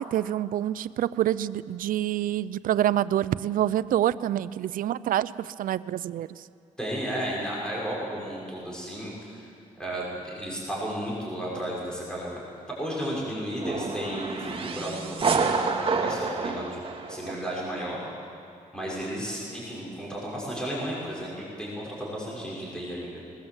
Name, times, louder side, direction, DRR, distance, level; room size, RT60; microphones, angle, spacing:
voice 1, 0.0-6.4, right 12 dB, 85° right, 17 dB, 0.5 m, -27 dB
voice 2, 6.8-9.5 9.8-12.4 12.7-15.7 16.0-16.8 17.1-18.0 18.7-23.2, equal, 5° left, -5 dB, 6.3 m, -33 dB
sound 1, 13.6-17.7, right 4 dB, 40° right, 2.2 m, -28 dB
20.5 x 20.0 x 8.2 m, 2.5 s
cardioid pair, 105°, 14 cm